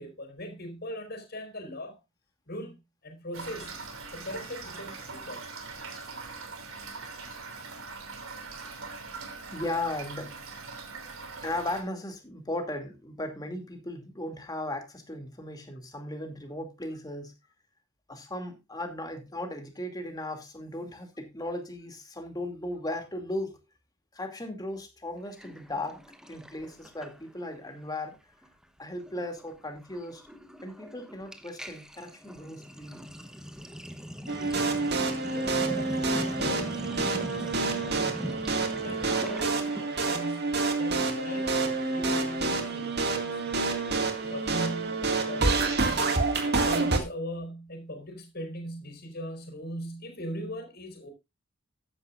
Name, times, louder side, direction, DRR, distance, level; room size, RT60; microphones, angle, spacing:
voice 1, 0.0-2.0 2.5-3.8 4.1-5.5 35.3-37.5 38.6-46.2 46.4-51.1, equal, 50° left, 4.4 m, -40 dB
Toilet flush / Fill (with liquid), 3.3-11.8, right 4 dB, 80° right, 3.1 m, -42 dB
voice 2, 9.5-10.4 11.4-17.3 18.1-23.6 24.1-26.0 26.3-28.2 28.8-30.3 30.6-33.1, left 1 dB, 20° left, 2.5 m, -36 dB
Sink (filling or washing), 25.4-27.6 27.9-28.2 28.4-39.8, equal, 5° right, 1.0 m, -41 dB
sound 1, 34.3-47.0, right 3 dB, 55° right, 2.1 m, -28 dB
14.0 x 10.0 x 2.5 m
head